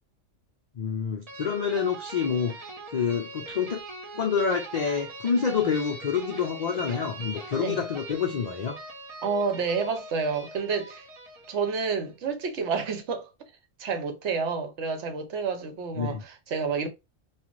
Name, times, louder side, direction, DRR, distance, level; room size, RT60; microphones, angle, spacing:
voice 1, 0.8-2.6 2.9-3.8 4.1-8.8 16.0-16.2, left 6 dB, 75° left, 0.3 m, -27 dB
guitar tapping riff, 1.3-12.0, right 2 dB, 40° right, 0.6 m, -42 dB
voice 2, 9.2-11.0 11.5-13.3 13.8-16.9, right 5 dB, 70° right, 0.9 m, -29 dB
2.5 x 2.4 x 2.9 m
omnidirectional pair, 1.3 m